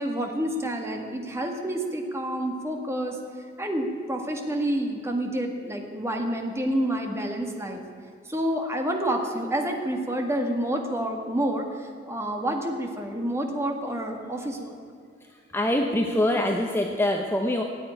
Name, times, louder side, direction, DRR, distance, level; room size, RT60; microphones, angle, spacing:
voice 1, 0.0-3.2 3.6-7.8 8.3-14.8, right 1 dB, 15° right, 3 dB, 1.8 m, -28 dB
voice 2, 15.3-17.6, left 1 dB, 10° left, 2 dB, 0.8 m, -24 dB
17.0 x 8.5 x 10.0 m, 2.2 s
head